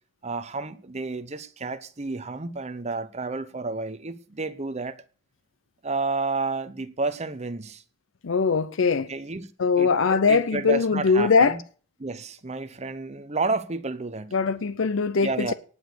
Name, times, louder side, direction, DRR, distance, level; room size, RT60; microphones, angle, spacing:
voice 1, 0.2-5.0 5.8-7.8 9.1-9.5 9.8-11.6 12.0-14.4 15.2-15.5, right 3 dB, 35° right, 0.9 m, -31 dB
voice 2, 8.2-9.1 9.6-11.6 14.3-15.5, left 5 dB, 75° left, 0.6 m, -21 dB
18.0 x 6.3 x 6.7 m
head